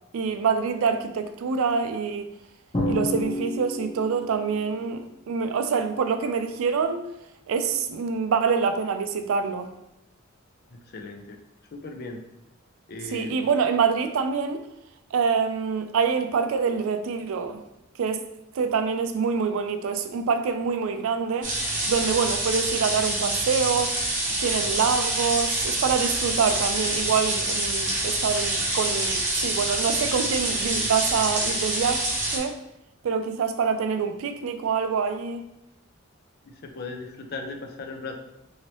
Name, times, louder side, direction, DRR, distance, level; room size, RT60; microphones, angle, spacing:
voice 1, 0.1-2.3 2.9-7.0 7.5-9.7 13.1-14.6 15.1-17.6 18.0-18.2 18.5-21.5 21.9-24.0 24.4-32.0 32.3-32.6 33.0-35.4, right 5 dB, 70° right, 8 dB, 0.3 m, -26 dB
Drum, 2.7-4.4, left 1 dB, 25° left, 0.8 m, -29 dB
voice 2, 10.9-11.4 11.7-12.2 12.9-13.5 36.4-38.1, left 3 dB, 50° left, 3 dB, 0.5 m, -37 dB
sound 1, 21.4-32.4, right 2 dB, 40° right, 0.9 m, -26 dB
2.9 x 2.7 x 3.0 m, 0.85 s
head